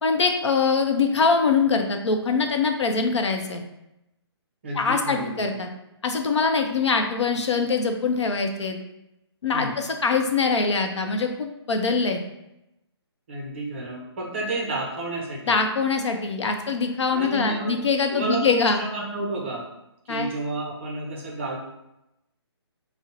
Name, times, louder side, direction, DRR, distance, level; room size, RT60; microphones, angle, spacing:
voice 1, 0.0-3.6 4.8-5.7 6.0-8.8 9.4-12.2 15.5-18.8 20.1-20.3, left 4 dB, 85° left, 4 dB, 0.6 m, -23 dB
voice 2, 4.6-5.5 9.5-9.8 13.3-15.6 17.1-17.7 18.1-18.4 18.8-19.7 20.0-21.6, right 2 dB, 25° right, -3 dB, 0.6 m, -31 dB
2.6 x 2.0 x 3.9 m, 0.89 s
hypercardioid pair, 175°, 14 cm